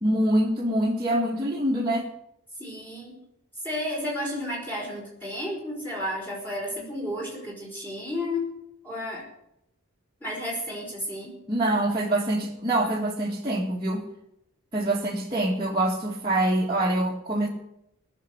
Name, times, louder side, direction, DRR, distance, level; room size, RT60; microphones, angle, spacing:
voice 1, 0.0-2.1 11.5-14.0 14.7-17.5, right 1 dB, 20° right, -5 dB, 2.0 m, -25 dB
voice 2, 2.6-3.2 3.6-8.5 8.8-9.3 10.2-11.3, left 1 dB, 10° left, -4 dB, 5.1 m, -32 dB
19.5 x 6.8 x 9.9 m, 0.80 s
head